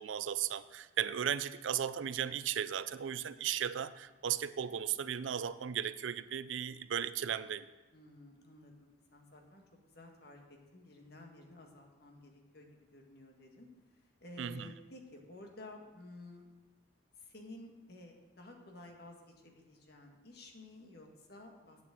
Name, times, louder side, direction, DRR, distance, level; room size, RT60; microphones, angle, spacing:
voice 1, 0.0-7.7 14.4-14.7, right 9 dB, 75° right, 15 dB, 0.4 m, -36 dB
voice 2, 7.9-13.7 13.9-16.5 17.2-21.8, left 2 dB, 55° left, 2 dB, 1.6 m, -53 dB
8.4 x 7.2 x 7.6 m, 1.2 s
head